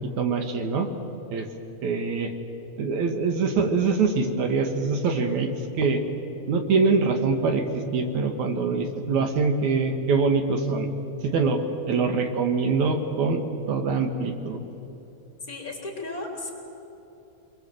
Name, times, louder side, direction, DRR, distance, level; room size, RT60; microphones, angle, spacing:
voice 1, 0.2-0.9 1.3-1.5 1.8-2.3 2.8-5.5 5.8-6.0 6.5-10.9 11.2-14.6, right 4 dB, 80° right, 5 dB, 2.9 m, -24 dB
voice 2, 15.5-16.5, left 2 dB, 30° left, -1 dB, 3.7 m, -34 dB
27.0 x 21.5 x 7.9 m, 3.0 s
omnidirectional pair, 3.3 m